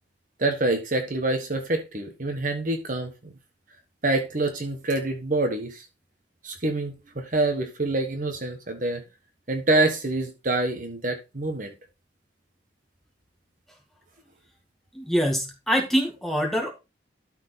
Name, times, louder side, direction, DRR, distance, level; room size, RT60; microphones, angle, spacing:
voice 1, 0.4-3.3 4.0-5.9 6.4-9.0 9.5-11.7, right 2 dB, 40° right, 1.3 m, -26 dB
voice 2, 14.9-16.7, equal, ahead, 2.1 m, -24 dB
12.5 x 4.6 x 4.1 m
head